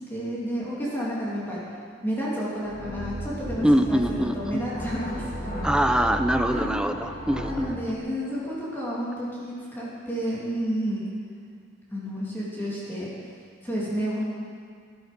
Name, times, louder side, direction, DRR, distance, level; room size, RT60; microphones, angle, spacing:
voice 1, 0.1-1.6 2.0-5.7 6.5-6.8 7.4-11.0 11.9-13.1 13.6-14.2, equal, 10° left, -7 dB, 2.9 m, -31 dB
sound 1, 2.6-7.9, equal, 45° left, 2.7 m, -34 dB
voice 2, 3.6-4.6 5.6-7.7, equal, 5° right, 7 dB, 0.5 m, -23 dB
13.5 x 12.0 x 5.3 m, 2.1 s
head